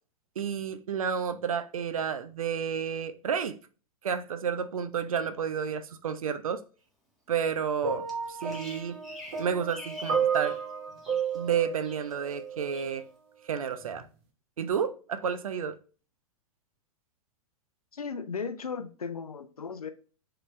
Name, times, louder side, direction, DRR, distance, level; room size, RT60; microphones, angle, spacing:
voice 1, 0.4-3.6 4.0-6.6 7.3-9.0 9.4-10.6 11.3-13.0 13.5-14.0 14.6-15.8, right 7 dB, 70° right, 0.5 m, -31 dB
sound 1, 7.8-12.9 13.8-14.0, right 6 dB, 45° right, 0.9 m, -33 dB
Bird vocalization bird call bird song, 8.1-10.6 10.9-11.5 11.8-12.4 12.7-13.0, left 2 dB, ahead, 1.3 m, -47 dB
voice 2, 17.9-19.9, left 5 dB, 80° left, 0.5 m, -36 dB
4.0 x 3.3 x 3.0 m
figure-of-eight pair, 100°, 19 cm